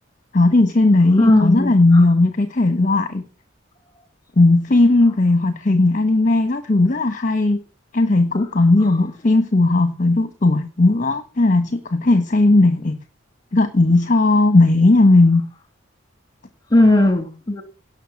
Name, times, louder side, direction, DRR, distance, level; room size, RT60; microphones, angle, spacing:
voice 1, 0.3-3.2 4.4-7.6 7.9-12.9 13.5-15.4, left 2 dB, 40° left, 8 dB, 1.4 m, -16 dB
voice 2, 1.2-2.0 16.7-17.6, left 1 dB, 20° left, 8 dB, 2.8 m, -16 dB
17.5 x 6.7 x 8.4 m, 0.34 s
head